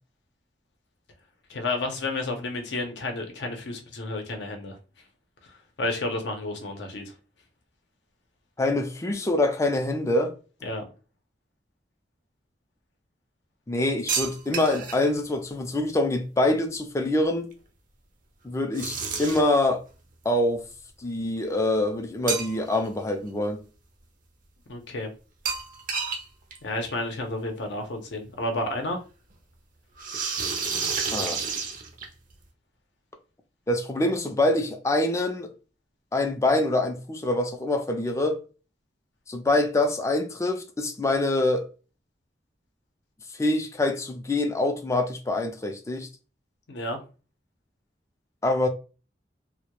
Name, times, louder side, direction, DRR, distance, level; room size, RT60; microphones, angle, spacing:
voice 1, 1.5-4.8 5.4-7.1 10.6-10.8 24.7-25.1 26.6-29.0 46.7-47.0, left 2 dB, 70° left, 0.6 m, -31 dB
voice 2, 8.6-10.3 13.7-17.5 18.4-19.8 20.3-20.6 21.0-23.6 31.1-31.4 33.7-35.5 36.1-38.4 39.3-41.6 43.4-46.1 48.4-48.7, left 2 dB, 15° left, 0.3 m, -25 dB
sound 1, 14.1-15.1 18.7-19.6 22.3-22.9 23.2-23.3 25.5-26.3 26.5-26.6 26.9-27.0 28.2-28.3 30.0-32.3, right 5 dB, 45° right, 0.5 m, -30 dB
2.2 x 2.0 x 2.9 m
head